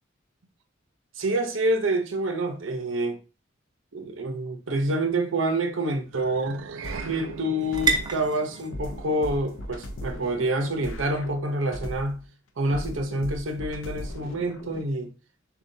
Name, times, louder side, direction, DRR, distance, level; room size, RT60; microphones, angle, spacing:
voice 1, 1.1-3.2 3.9-6.7 7.0-12.2 12.6-15.1, right 1 dB, 90° right, 0.9 m, -27 dB
sound 1, 4.3-12.1, right 4 dB, 20° right, 0.7 m, -35 dB
sound 2, 6.1-10.7, right 6 dB, 70° right, 0.3 m, -42 dB
sound 3, 6.8-8.3 8.7-12.3 12.7-14.8, left 1 dB, 85° left, 0.6 m, -38 dB
6.8 x 2.4 x 2.7 m
head